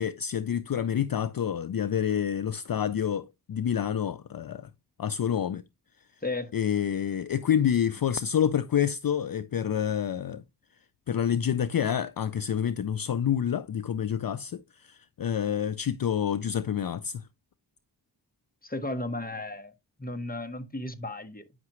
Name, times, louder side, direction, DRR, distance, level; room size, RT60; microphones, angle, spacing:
voice 1, 0.0-4.7 5.0-5.6 6.5-10.4 11.1-17.2, left 9 dB, 60° left, 0.5 m, -28 dB
voice 2, 6.2-6.5 18.6-19.7 20.0-21.6, left 2 dB, 20° left, 1.2 m, -34 dB
9.3 x 5.8 x 3.0 m
wide cardioid pair, 40°, 41 cm